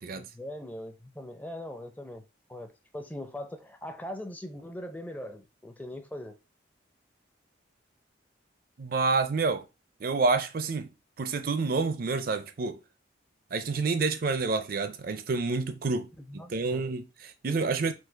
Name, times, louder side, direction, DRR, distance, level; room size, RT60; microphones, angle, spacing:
voice 1, 0.1-2.2 2.5-6.3 16.2-16.8 17.5-17.6, left 1 dB, 10° left, 0.5 m, -41 dB
voice 2, 8.8-9.6 10.0-10.9 11.2-12.8 13.5-17.9, right 4 dB, 50° right, 0.5 m, -28 dB
4.6 x 2.3 x 4.4 m
head